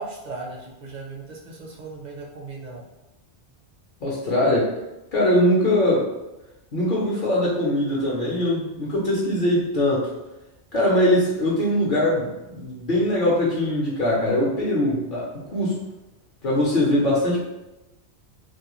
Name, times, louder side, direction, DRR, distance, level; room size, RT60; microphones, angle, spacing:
voice 1, 0.0-2.8, right 3 dB, 50° right, -2 dB, 0.6 m, -37 dB
voice 2, 4.0-4.7 5.1-6.1 6.7-10.1 10.7-15.7 16.4-17.4, left 1 dB, 55° left, -5 dB, 0.7 m, -21 dB
2.4 x 2.1 x 2.9 m, 0.99 s
omnidirectional pair, 1.1 m